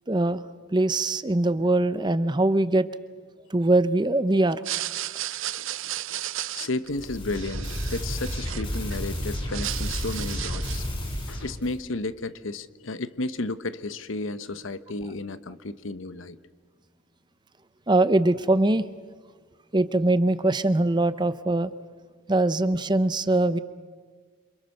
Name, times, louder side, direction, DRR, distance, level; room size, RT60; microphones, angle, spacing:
voice 1, 0.1-0.4 0.7-2.9 3.5-4.6 17.9-18.9 19.7-21.7 22.3-23.6, right 2 dB, 20° right, 14 dB, 0.7 m, -22 dB
sound 1, 4.5-9.0 9.3-10.9, right 13 dB, 75° right, 0.7 m, -34 dB
voice 2, 5.5-6.2 6.5-16.4, left 2 dB, 75° left, 13 dB, 1.0 m, -33 dB
sound 2, 6.9-11.8, equal, 25° left, 4.9 m, -31 dB
28.5 x 26.5 x 6.6 m, 1.5 s
head